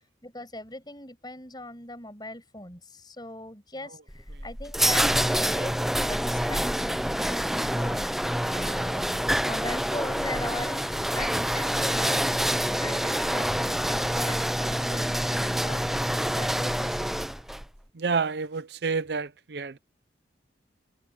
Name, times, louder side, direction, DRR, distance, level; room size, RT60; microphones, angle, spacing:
voice 1, 0.2-5.8 6.1-8.1 8.5-15.9 16.3-17.1, left 1 dB, 25° left, 6.6 m, -40 dB
sound 1, 4.1-17.6, equal, ahead, 0.5 m, -27 dB
voice 2, 17.9-19.8, right 5 dB, 65° right, 0.6 m, -29 dB
head